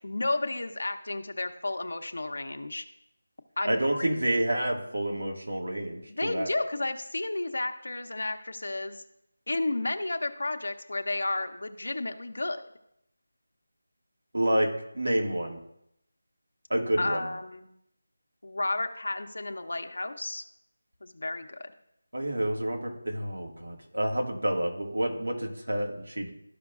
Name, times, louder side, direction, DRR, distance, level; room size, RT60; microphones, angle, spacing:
voice 1, 0.0-2.9 3.6-4.1 6.1-9.0 9.5-12.7 17.0-17.7 18.4-20.4 21.0-21.7, left 2 dB, 75° left, 6 dB, 0.7 m, -32 dB
voice 2, 3.7-6.5 14.3-15.6 16.7-17.3 22.1-26.3, right 1 dB, 80° right, 1 dB, 1.7 m, -29 dB
12.5 x 5.1 x 2.4 m, 0.78 s
figure-of-eight pair, 170°, 0 cm